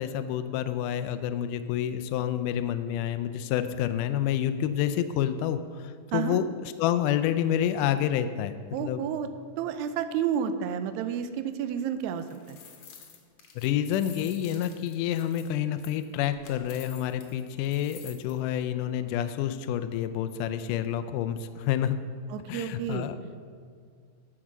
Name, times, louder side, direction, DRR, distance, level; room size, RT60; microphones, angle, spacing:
voice 1, 0.0-6.5 6.8-8.5 8.8-9.0 13.6-22.0 22.5-23.2, left 10 dB, 80° left, 10 dB, 1.9 m, -28 dB
voice 2, 8.7-9.3 9.6-12.6 22.3-23.0, right 8 dB, 85° right, 10 dB, 1.6 m, -30 dB
sound 1, 12.0-18.3, left 7 dB, 60° left, 1.9 m, -50 dB
14.0 x 4.9 x 6.0 m, 2.1 s
omnidirectional pair, 4.0 m